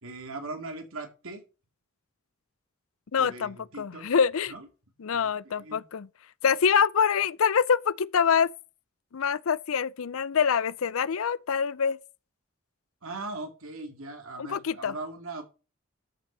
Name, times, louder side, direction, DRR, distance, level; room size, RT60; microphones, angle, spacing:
voice 1, 0.0-1.4 3.2-4.1 4.5-4.7 5.1-5.8 13.0-15.4, right 2 dB, 85° right, 2.5 m, -39 dB
voice 2, 3.1-4.5 5.0-6.1 6.4-8.5 9.1-12.0 14.4-14.9, left 6 dB, 85° left, 0.5 m, -25 dB
13.0 x 5.9 x 5.5 m
head